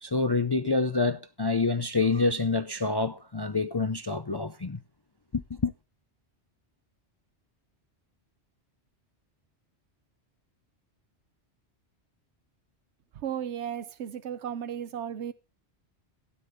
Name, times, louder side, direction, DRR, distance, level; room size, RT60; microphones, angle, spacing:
voice 1, 0.0-4.8 5.3-5.7, left 3 dB, 30° left, 0.5 m, -27 dB
voice 2, 13.1-15.3, right 9 dB, 85° right, 1.1 m, -35 dB
12.5 x 9.7 x 3.6 m
omnidirectional pair, 1.1 m